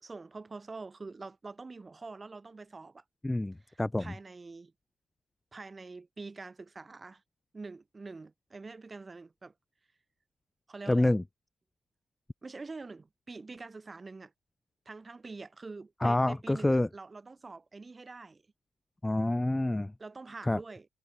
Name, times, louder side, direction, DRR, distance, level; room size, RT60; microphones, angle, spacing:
voice 1, 0.0-3.0 3.7-4.7 5.5-7.2 7.5-9.5 10.7-11.1 12.4-14.3 14.9-18.4 20.0-20.9, right 3 dB, 25° right, 2.3 m, -45 dB
voice 2, 3.2-4.1 10.9-11.2 16.0-16.9 19.0-19.9 20.4-20.6, left 1 dB, 10° left, 0.4 m, -27 dB
cardioid pair, 90°, 0 cm